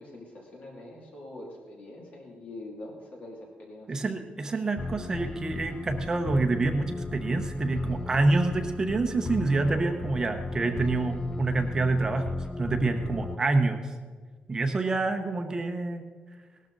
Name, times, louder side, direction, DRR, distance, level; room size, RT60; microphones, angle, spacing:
voice 1, 0.0-4.0 10.9-11.2, left 1 dB, 45° left, -1 dB, 2.5 m, -44 dB
voice 2, 3.9-13.9 14.5-16.1, right 3 dB, 20° right, 5 dB, 0.8 m, -27 dB
sound 1, 4.8-13.4, left 3 dB, 20° left, 0.4 m, -36 dB
18.5 x 13.0 x 3.9 m, 1.5 s
wide cardioid pair, 180°, 3 cm